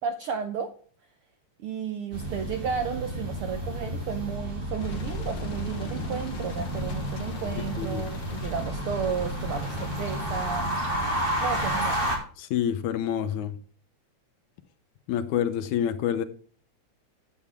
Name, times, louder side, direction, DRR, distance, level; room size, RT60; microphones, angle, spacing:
voice 1, 0.0-0.7 1.6-10.7 11.4-12.1, right 6 dB, 75° right, 1.2 m, -33 dB
sound 1, 2.1-12.2, right 1 dB, 20° right, 2.5 m, -31 dB
sound 2, 4.8-10.6, left 5 dB, 55° left, 1.4 m, -39 dB
voice 2, 12.4-13.5 15.1-16.2, left 9 dB, 85° left, 2.3 m, -27 dB
10.0 x 8.4 x 3.6 m
omnidirectional pair, 3.3 m